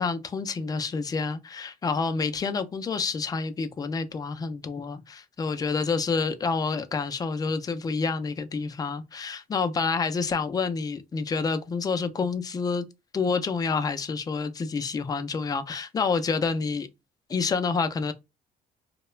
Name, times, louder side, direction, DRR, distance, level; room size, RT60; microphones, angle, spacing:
voice 1, 0.0-12.9 13.1-16.9 17.3-18.1, left 4 dB, 20° left, 0.3 m, -28 dB
2.3 x 2.1 x 3.0 m
cardioid pair, 110°, 17 cm